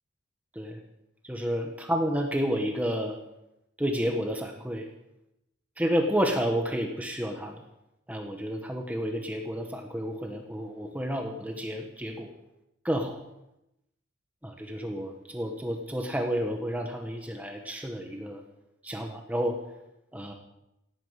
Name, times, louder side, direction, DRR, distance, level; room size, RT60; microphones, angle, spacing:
voice 1, 1.2-3.2 3.8-4.9 5.8-7.6 8.1-12.3 12.8-13.2 14.4-18.4 18.8-19.6 20.1-20.3, equal, 10° right, 3 dB, 1.4 m, -30 dB
17.0 x 8.7 x 8.3 m, 0.86 s
head